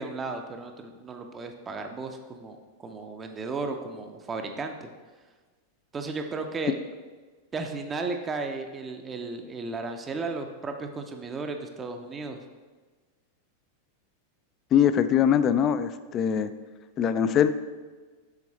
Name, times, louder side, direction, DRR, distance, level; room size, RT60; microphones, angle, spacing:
voice 1, 0.0-4.9 5.9-6.8 7.5-12.4, right 3 dB, 20° right, 5 dB, 0.5 m, -34 dB
voice 2, 14.7-16.5 17.0-17.5, left 9 dB, 30° left, 12 dB, 0.3 m, -22 dB
7.3 x 3.8 x 4.2 m, 1.4 s
figure-of-eight pair, 90°, 0 cm